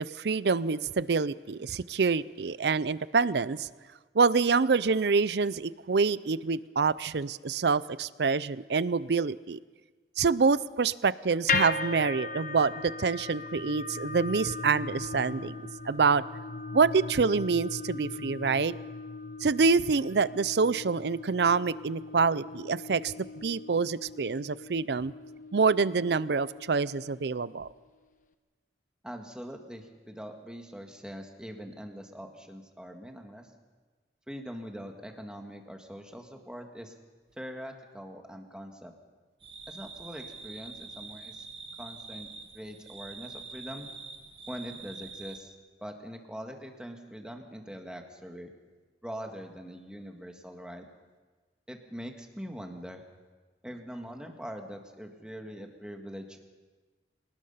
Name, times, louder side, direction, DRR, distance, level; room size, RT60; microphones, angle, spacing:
voice 1, 0.0-3.7 4.1-9.6 10.2-15.6 15.9-16.2 16.7-18.7 19.4-25.1 25.5-27.7, right 4 dB, 70° right, 18 dB, 0.5 m, -26 dB
sound 1, 11.5-27.7, left 4 dB, 45° left, 1.1 m, -38 dB
voice 2, 29.0-33.5 34.3-36.9 37.4-38.9 39.7-41.5 41.8-42.3 42.5-43.9 44.5-45.5 45.8-48.5 49.0-50.9 51.7-53.0 53.6-56.4, equal, 5° right, 3 dB, 1.9 m, -42 dB
sound 2, 39.4-45.4, right 4 dB, 30° right, 1.7 m, -45 dB
27.0 x 19.0 x 5.7 m, 1.3 s
head